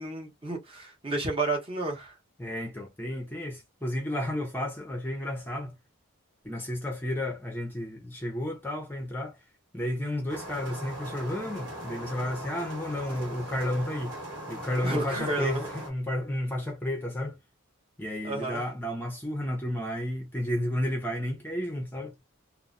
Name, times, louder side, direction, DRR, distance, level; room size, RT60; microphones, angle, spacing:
voice 1, 0.0-2.1 14.8-15.7 18.2-18.6, right 2 dB, 25° right, 0.8 m, -31 dB
voice 2, 2.4-5.7 6.4-9.4 9.7-14.1 14.5-17.4 18.0-22.1, left 1 dB, 10° left, 0.5 m, -32 dB
sound 1, 10.3-15.9, right 1 dB, 60° right, 1.2 m, -39 dB
3.0 x 2.0 x 2.5 m
head